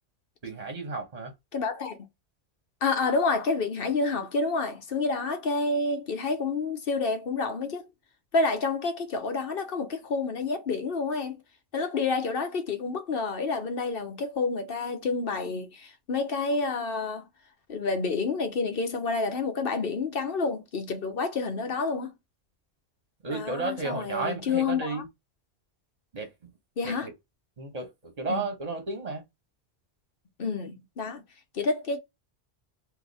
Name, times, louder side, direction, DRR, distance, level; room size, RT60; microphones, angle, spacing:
voice 1, 0.4-1.3 23.2-25.1 26.1-26.3 26.8-27.1 27.6-29.2, right 3 dB, 35° right, 1.4 m, -33 dB
voice 2, 1.5-2.1 2.8-7.9 8.3-11.4 11.7-17.2 17.7-22.1 23.3-25.0 26.8-27.1 28.3-28.4 30.4-31.2 31.5-32.0, left 4 dB, 60° left, 1.0 m, -29 dB
2.8 x 2.8 x 4.1 m
omnidirectional pair, 1.1 m